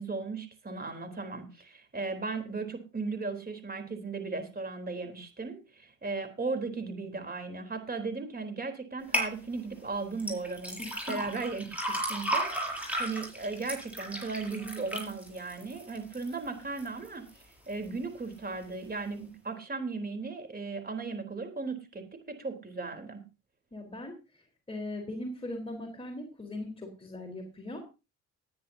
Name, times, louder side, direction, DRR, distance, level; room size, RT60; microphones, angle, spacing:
voice 1, 0.0-10.8 11.1-23.2, right 3 dB, 30° right, 7 dB, 3.8 m, -36 dB
sound 1, 9.1-9.3 10.2-16.3 16.8-17.3 17.8-17.9, right 1 dB, 5° right, 7.1 m, -34 dB
voice 2, 10.8-11.2 23.7-24.4 24.7-27.8, left 1 dB, 20° left, 2 dB, 4.2 m, -39 dB
20.0 x 10.0 x 2.8 m, 0.29 s
cardioid pair, 90°, 30 cm